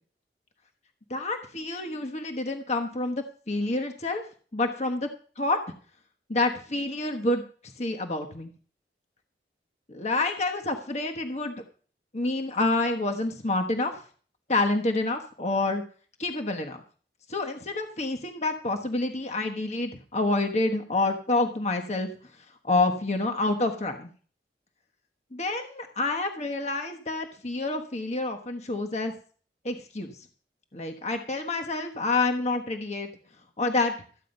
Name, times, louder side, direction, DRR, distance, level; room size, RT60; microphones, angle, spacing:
voice 1, 1.1-4.2 4.5-5.1 5.4-5.6 6.3-7.4 7.8-8.5 9.9-11.6 12.1-13.9 14.5-15.8 16.2-16.8 17.3-22.1 22.6-24.1 25.3-29.1 29.6-30.2 30.7-33.1 33.6-33.9, left 2 dB, 40° left, 5 dB, 1.3 m, -28 dB
14.0 x 9.3 x 5.4 m, 0.42 s
head